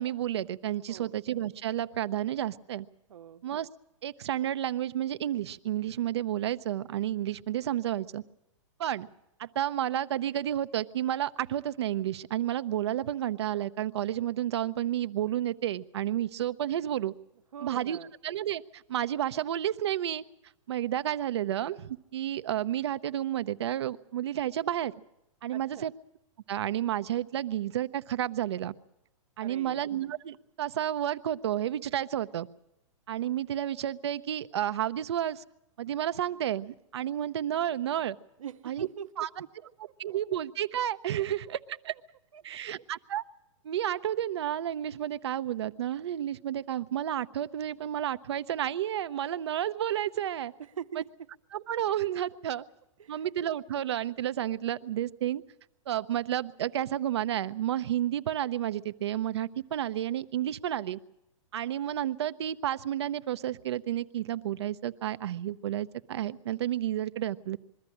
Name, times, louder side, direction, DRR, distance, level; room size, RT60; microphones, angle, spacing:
voice 1, 0.0-2.9 3.4-3.7 4.0-8.2 8.8-9.1 9.4-17.1 17.6-18.0 18.2-20.2 20.7-24.9 25.4-25.9 26.5-28.7 29.4-32.5 33.1-35.4 35.8-38.2 38.7-38.9 39.2-39.3 40.0-41.9 42.4-43.2 43.6-50.5 51.5-52.6 53.1-55.4 55.9-61.0 61.5-67.6, right 11 dB, 55° right, 13 dB, 0.7 m, -31 dB
voice 2, 3.1-3.5 17.5-18.1 25.5-25.9 29.4-29.8 38.4-39.7 40.1-40.2 41.7-41.8 42.3-42.8 50.6-51.1 53.0-53.2, right 9 dB, 90° right, 12 dB, 0.9 m, -43 dB
22.0 x 13.5 x 9.9 m, 0.87 s
hypercardioid pair, 175°, 17 cm